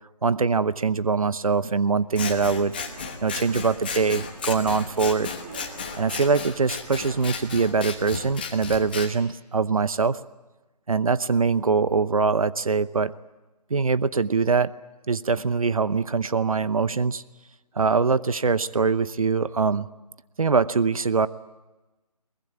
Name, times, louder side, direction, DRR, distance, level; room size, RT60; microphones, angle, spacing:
voice 1, 0.2-2.8 3.2-5.3 6.0-10.2 10.9-13.1 13.7-14.7 15.1-17.2 17.7-19.9 20.4-21.3, right 4 dB, 60° right, 16 dB, 0.8 m, -23 dB
Scissors, 2.1-9.1, left 5 dB, 15° left, 1.1 m, -34 dB
sound 1, 2.6-8.2, right 4 dB, 20° right, 1.6 m, -47 dB
22.5 x 20.5 x 9.3 m, 1.1 s
hypercardioid pair, 175°, 21 cm